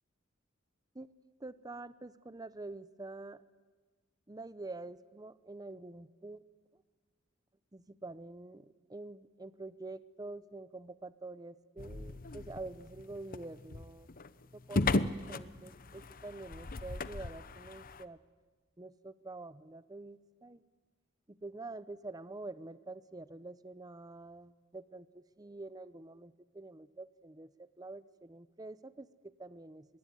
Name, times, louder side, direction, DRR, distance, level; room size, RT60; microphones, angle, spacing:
voice 1, 1.4-3.4 4.3-6.4 7.7-14.1 14.5-18.2 18.8-20.6 21.3-29.9, right 2 dB, 20° right, 15 dB, 0.7 m, -47 dB
sound 1, 11.8-18.0, left 2 dB, 45° left, 0.9 m, -37 dB
24.5 x 22.0 x 9.6 m, 1.3 s
head